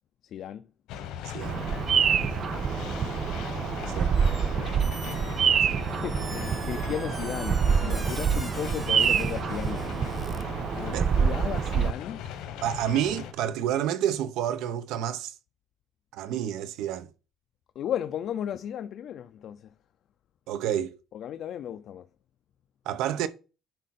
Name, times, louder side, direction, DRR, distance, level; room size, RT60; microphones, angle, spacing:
voice 1, 0.2-0.7 2.2-2.4 4.4-4.7 5.6-10.1 10.8-12.2 17.8-19.7 21.1-22.1, left 10 dB, 50° left, 0.5 m, -35 dB
sound 1, 0.9-13.3, left 9 dB, 75° left, 1.2 m, -39 dB
voice 2, 1.2-1.6 3.9-4.1 10.9-11.1 12.6-15.3 16.1-17.1 20.5-20.9 22.9-23.3, right 10 dB, 75° right, 0.8 m, -29 dB
Bird vocalization bird call bird song, 1.4-11.9, right 7 dB, 35° right, 0.3 m, -26 dB
Squeak, 4.1-4.5 4.8-10.4, right 3 dB, 15° right, 0.8 m, -45 dB
10.0 x 4.6 x 4.2 m
cardioid pair, 160°, 0 cm